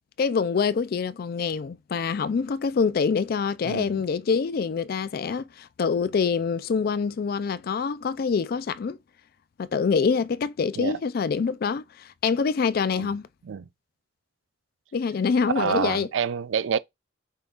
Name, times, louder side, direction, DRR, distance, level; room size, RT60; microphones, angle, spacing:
voice 1, 0.2-9.0 9.6-13.3 14.9-16.1, left 5 dB, 50° left, 0.3 m, -25 dB
voice 2, 3.7-4.0 10.8-11.0 13.0-13.1 13.5-13.6 15.6-16.8, right 7 dB, 80° right, 0.4 m, -27 dB
5.4 x 2.4 x 3.8 m
head